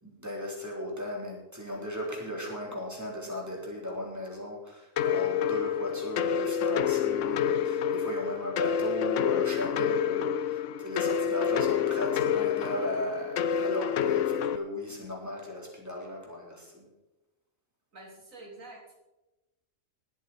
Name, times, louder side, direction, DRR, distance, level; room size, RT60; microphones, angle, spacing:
voice 1, 0.0-16.9, equal, 10° right, -2 dB, 3.5 m, -36 dB
sound 1, 5.0-14.6, left 8 dB, 70° left, 0.9 m, -28 dB
voice 2, 17.9-19.0, right 2 dB, 90° right, -1 dB, 3.8 m, -47 dB
19.5 x 8.5 x 4.2 m, 1.0 s
omnidirectional pair, 1.4 m